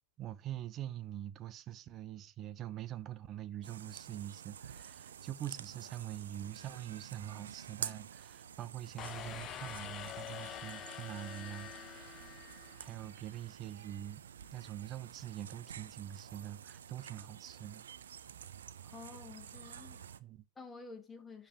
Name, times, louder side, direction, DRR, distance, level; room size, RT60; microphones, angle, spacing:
voice 1, 0.2-12.4 12.8-14.2 14.5-17.8 20.2-20.4, right 12 dB, 40° right, 0.7 m, -44 dB
sound 1, 3.6-20.2, right 8 dB, 80° right, 0.4 m, -49 dB
sound 2, 9.0-13.2, left 12 dB, 35° left, 0.3 m, -46 dB
voice 2, 18.9-20.0 20.6-21.5, left 4 dB, 20° left, 1.8 m, -50 dB
9.8 x 3.4 x 3.0 m
hypercardioid pair, 100°, 0 cm